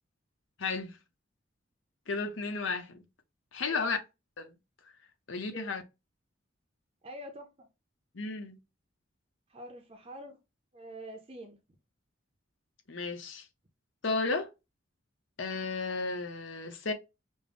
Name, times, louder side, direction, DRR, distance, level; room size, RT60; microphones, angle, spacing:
voice 1, 0.6-1.0 2.1-3.0 3.5-4.0 4.4-4.6 5.3-5.8 8.1-8.6 12.9-13.4 14.0-14.5 15.4-16.9, left 4 dB, 75° left, 0.8 m, -33 dB
voice 2, 7.0-7.7 9.5-10.4 10.7-11.6, right 1 dB, 30° right, 0.6 m, -46 dB
5.3 x 2.1 x 3.4 m
head